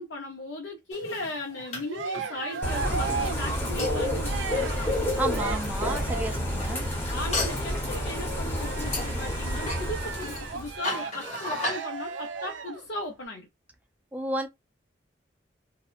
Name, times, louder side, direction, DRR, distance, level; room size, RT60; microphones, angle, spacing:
voice 1, 0.0-5.0 7.1-13.5, left 2 dB, 80° left, 0.6 m, -37 dB
sound 1, 0.9-5.2 5.8-6.1 7.3-7.7 8.9-11.8, left 2 dB, 35° left, 1.0 m, -34 dB
Cheering, 1.5-6.5 7.3-12.8, right 5 dB, 85° right, 0.4 m, -37 dB
Bird / Rain, 2.6-10.8, equal, 15° left, 0.8 m, -30 dB
voice 2, 5.2-7.0 14.1-14.5, right 2 dB, 10° right, 0.3 m, -32 dB
2.7 x 2.1 x 2.4 m
head